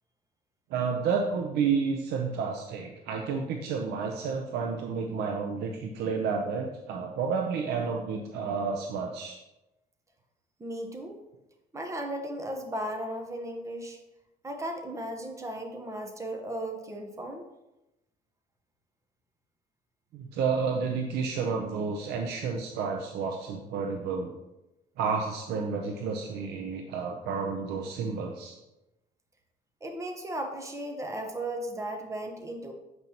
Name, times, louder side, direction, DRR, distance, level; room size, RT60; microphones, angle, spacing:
voice 1, 0.7-9.4 20.1-24.3 25.0-28.5, right 5 dB, 80° right, 2 dB, 0.7 m, -30 dB
voice 2, 10.6-11.2 11.7-14.0 14.4-17.4 29.8-32.7, right 1 dB, 15° right, 4 dB, 1.0 m, -36 dB
7.8 x 5.4 x 2.9 m, 0.96 s
cardioid pair, 110°, 17 cm